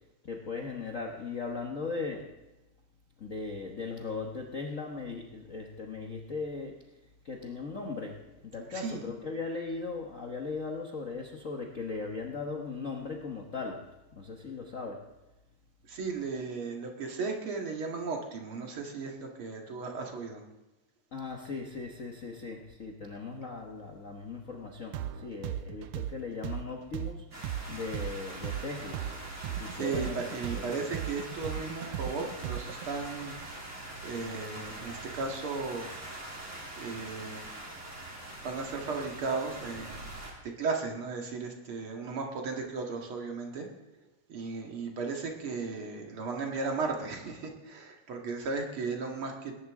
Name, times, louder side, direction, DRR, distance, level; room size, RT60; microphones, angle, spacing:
voice 1, 0.2-2.3 3.2-6.7 7.2-13.9 14.1-15.0 21.1-29.0 29.6-30.7, left 4 dB, 75° left, 1 dB, 0.7 m, -38 dB
voice 2, 8.7-9.0 15.9-20.4 29.4-33.4 34.0-35.9 36.8-37.5 38.4-40.1 40.6-43.7 44.3-49.5, right 4 dB, 50° right, 1 dB, 2.4 m, -35 dB
sound 1, 24.9-32.9, right 11 dB, 80° right, 1.5 m, -36 dB
sound 2, 27.3-40.3, right 1 dB, 25° right, 3.1 m, -43 dB
20.5 x 11.0 x 3.7 m, 1.0 s
omnidirectional pair, 3.3 m